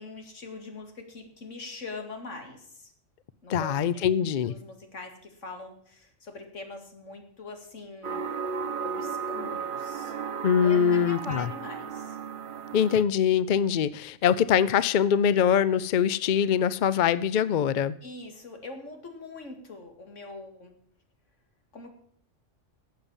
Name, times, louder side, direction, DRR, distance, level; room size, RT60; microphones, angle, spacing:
voice 1, 0.0-2.9 3.4-4.0 4.5-8.2 8.8-10.1 10.6-12.2 18.0-20.7 21.7-21.9, left 3 dB, 85° left, 4 dB, 2.4 m, -42 dB
voice 2, 3.5-4.6 10.4-11.5 12.7-17.9, left 8 dB, 55° left, 16 dB, 0.6 m, -23 dB
sound 1, 8.0-13.0, right 6 dB, 50° right, 0.9 m, -34 dB
12.0 x 7.8 x 7.1 m, 0.62 s
omnidirectional pair, 1.2 m